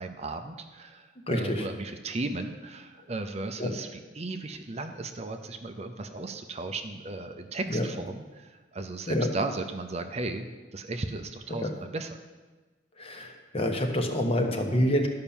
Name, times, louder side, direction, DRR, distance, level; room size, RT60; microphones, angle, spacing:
voice 1, 0.0-12.2, right 2 dB, 35° right, 7 dB, 0.6 m, -36 dB
voice 2, 1.3-1.7 3.6-3.7 7.7-7.8 9.1-9.3 11.6-11.7 13.0-15.1, equal, 30° left, 4 dB, 1.1 m, -27 dB
12.0 x 5.8 x 7.1 m, 1.3 s
head